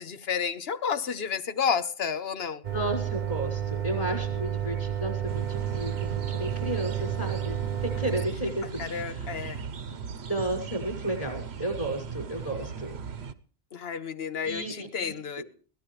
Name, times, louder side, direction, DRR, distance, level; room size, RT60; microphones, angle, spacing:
voice 1, 0.0-2.6 8.6-9.6 13.7-15.4, left 6 dB, 70° left, 1.2 m, -31 dB
sound 1, 2.6-8.3, right 10 dB, 50° right, 1.0 m, -31 dB
voice 2, 2.7-9.3 10.3-13.0 14.4-14.9, right 1 dB, 35° left, 6.3 m, -33 dB
sound 2, 5.3-13.3, right 6 dB, 85° right, 1.2 m, -38 dB
22.5 x 17.0 x 3.2 m
omnidirectional pair, 1.1 m